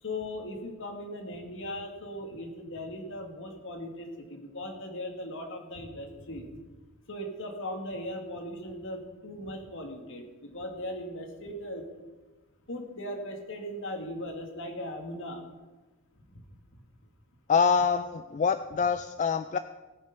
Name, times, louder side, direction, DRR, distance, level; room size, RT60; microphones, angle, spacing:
voice 1, 0.0-6.5 7.1-11.8 12.7-15.4, left 1 dB, 60° left, 3 dB, 2.3 m, -38 dB
voice 2, 17.5-19.6, left 6 dB, 35° left, 11 dB, 0.4 m, -25 dB
18.0 x 7.2 x 5.5 m, 1.2 s
head